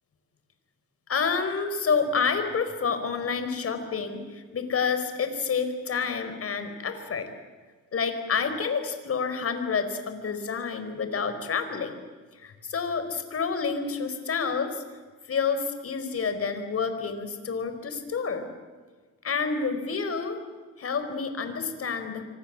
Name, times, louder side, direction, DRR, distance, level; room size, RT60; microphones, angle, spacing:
voice 1, 1.1-7.3 7.9-12.0 12.4-14.8 15.3-18.5 19.2-20.4 20.8-22.2, left 5 dB, 50° left, 9 dB, 4.7 m, -29 dB
26.0 x 25.0 x 7.7 m, 1.4 s
cardioid pair, 90°, 30 cm